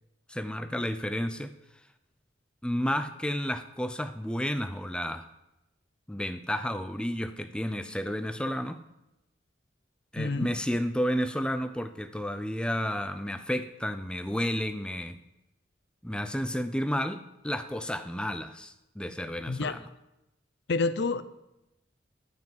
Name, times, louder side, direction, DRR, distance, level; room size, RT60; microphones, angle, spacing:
voice 1, 0.3-1.5 2.6-5.3 6.1-8.8 10.1-15.2 16.0-19.8, equal, 5° left, 10 dB, 0.5 m, -31 dB
voice 2, 10.2-10.5 19.5-19.8 20.7-21.2, left 3 dB, 65° left, 14 dB, 0.6 m, -28 dB
12.0 x 6.1 x 9.1 m, 0.92 s
head